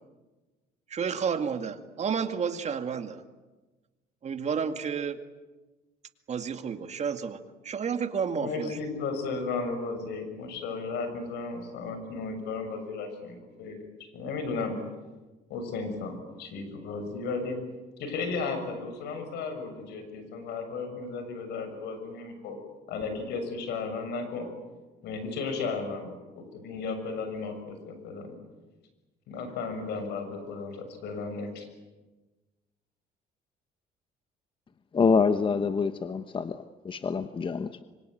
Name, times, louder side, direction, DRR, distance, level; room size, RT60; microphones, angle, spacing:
voice 1, 0.9-3.2 4.2-5.2 6.3-7.4 7.6-8.8, right 6 dB, 40° right, 8 dB, 2.1 m, -31 dB
voice 2, 8.4-14.8 15.5-17.6 18.0-22.6 22.9-24.5 25.0-28.4 29.3-31.6, left 4 dB, 80° left, 8 dB, 6.8 m, -34 dB
voice 3, 34.9-37.8, left 5 dB, 30° left, 11 dB, 1.0 m, -26 dB
25.5 x 25.0 x 9.2 m, 1.2 s
cardioid pair, 110°, 17 cm